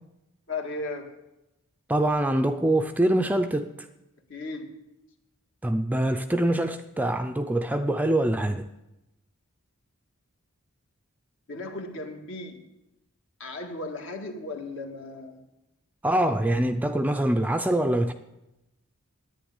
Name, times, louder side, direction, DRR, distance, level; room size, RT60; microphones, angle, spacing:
voice 1, 0.5-1.2 4.3-4.7 11.5-12.6 13.4-15.4, left 2 dB, 60° left, 1.8 m, -36 dB
voice 2, 1.9-3.9 5.6-8.7 16.0-18.1, right 1 dB, 5° right, 0.4 m, -24 dB
10.0 x 9.5 x 9.7 m
head